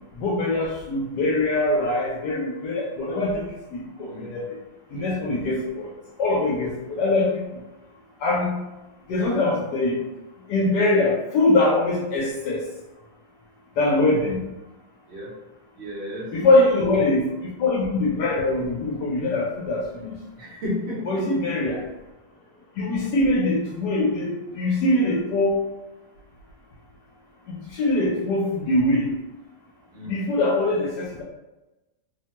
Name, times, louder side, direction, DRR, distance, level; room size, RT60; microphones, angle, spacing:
voice 1, 0.2-3.4 3.7-4.4 4.9-5.9 6.2-6.7 7.0-7.3 8.2-8.5 9.1-10.0 10.5-12.6 13.8-14.4 16.3-17.2 17.6-20.1 21.1-21.8 22.8-24.3 24.6-25.6 27.8-29.1 30.1-31.2, left 2 dB, 80° left, -3 dB, 1.2 m, -22 dB
voice 2, 4.0-4.4 15.1-15.3 15.8-16.3 20.4-21.1 29.9-30.2, left 1 dB, 50° right, -5 dB, 0.9 m, -32 dB
3.0 x 2.1 x 2.8 m, 1.0 s
omnidirectional pair, 1.8 m